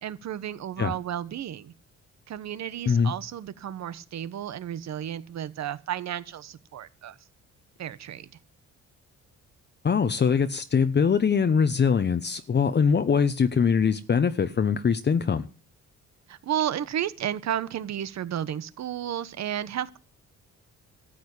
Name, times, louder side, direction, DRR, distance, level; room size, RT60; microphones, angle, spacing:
voice 1, 0.0-1.7 2.3-7.2 7.8-8.3 16.3-20.0, right 10 dB, 65° right, 1.1 m, -32 dB
voice 2, 9.8-15.5, left 6 dB, 35° left, 0.9 m, -22 dB
13.5 x 7.8 x 8.2 m
cardioid pair, 90°, 30 cm